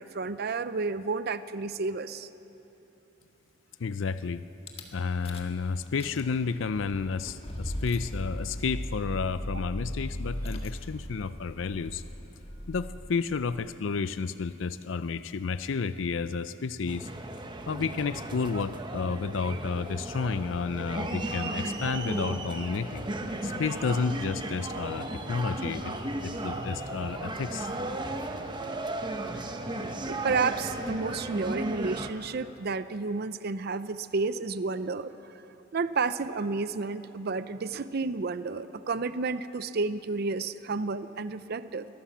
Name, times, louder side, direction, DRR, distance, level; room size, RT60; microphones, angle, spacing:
voice 1, 0.0-2.3 30.1-35.1 35.7-41.9, right 4 dB, 50° right, 13 dB, 0.5 m, -31 dB
voice 2, 3.8-4.4 4.9-12.0 12.7-17.1 17.7-23.1 23.4-25.9 26.2-27.7, left 5 dB, 70° left, 13 dB, 0.5 m, -31 dB
Rattle / Car / Engine starting, 4.7-4.8 5.3-5.6 5.9-13.6, equal, 30° left, 1.9 m, -38 dB
sound 1, 16.9-32.1, right 2 dB, 25° right, 1.1 m, -35 dB
23.0 x 17.0 x 7.3 m, 2.9 s
head